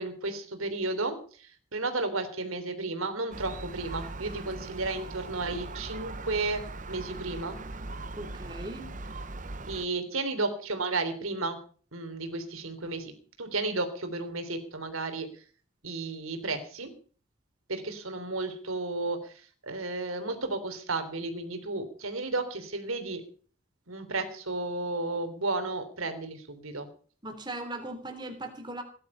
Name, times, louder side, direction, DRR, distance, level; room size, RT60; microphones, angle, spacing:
voice 1, 0.0-7.6 9.7-11.6 11.9-15.3 15.8-16.9 17.7-23.2 23.9-26.9, right 3 dB, 85° right, 8 dB, 3.4 m, -33 dB
Gull seagull, 3.3-9.9, right 2 dB, 40° right, 0.9 m, -40 dB
voice 2, 8.2-8.9 27.2-28.8, right 2 dB, 20° right, 5 dB, 3.4 m, -38 dB
17.5 x 11.5 x 5.5 m, 0.43 s
head